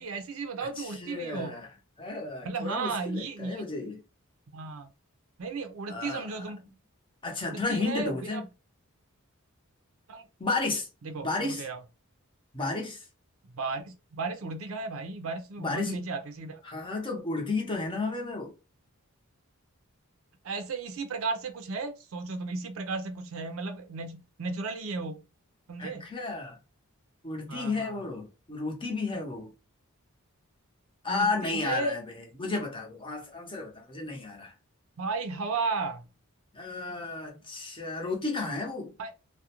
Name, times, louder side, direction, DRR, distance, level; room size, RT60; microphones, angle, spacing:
voice 1, 0.0-1.6 2.4-3.6 4.5-4.9 5.4-6.6 7.5-8.4 10.1-10.3 11.0-11.8 13.5-16.6 20.4-25.2 25.7-26.1 27.5-28.0 31.1-32.0 35.0-36.1 39.0-39.1, right 3 dB, 70° right, 0.5 m, -34 dB
voice 2, 0.8-1.7 2.0-4.0 5.9-6.4 7.2-8.4 10.4-10.9 11.2-11.6 12.5-13.1 15.6-16.0 16.6-18.5 25.8-26.6 27.2-29.5 31.0-34.5 36.5-39.0, left 3 dB, 25° left, 0.7 m, -33 dB
2.4 x 2.1 x 2.8 m
head